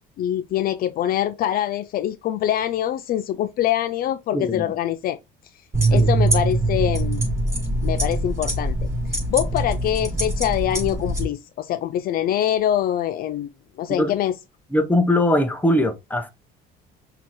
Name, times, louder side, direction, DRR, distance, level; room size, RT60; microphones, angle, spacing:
voice 1, 0.2-5.2 5.9-7.2 7.8-8.8 9.3-13.5 13.8-14.3, left 11 dB, 55° left, 0.4 m, -24 dB
voice 2, 4.3-4.7 5.9-6.1 14.0-14.1 14.7-16.3, left 1 dB, 10° left, 1.0 m, -21 dB
sound 1, 5.7-11.3, right 2 dB, 15° right, 3.1 m, -23 dB
5.8 x 2.9 x 3.2 m
cardioid pair, 110°, 18 cm